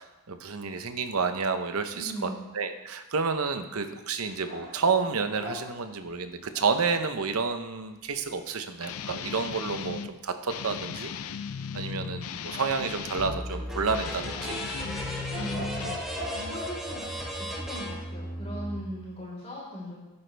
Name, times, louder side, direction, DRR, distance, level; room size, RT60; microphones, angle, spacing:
voice 1, 0.0-11.1 11.7-14.5, right 5 dB, 80° right, 8 dB, 0.8 m, -30 dB
voice 2, 1.9-2.5 15.3-15.9 16.3-17.0 17.5-20.0, equal, 30° left, -6 dB, 4.3 m, -38 dB
sound 1, 4.4-7.1 12.4-13.3 14.3-17.1, left 1 dB, 40° right, 4.1 m, -41 dB
Guitar, 8.8-10.1 10.5-13.4 13.9-16.1, left 7 dB, 75° left, 0.5 m, -37 dB
sound 2, 13.2-18.8, equal, ahead, 1.3 m, -36 dB
12.0 x 9.7 x 3.4 m, 1.1 s
head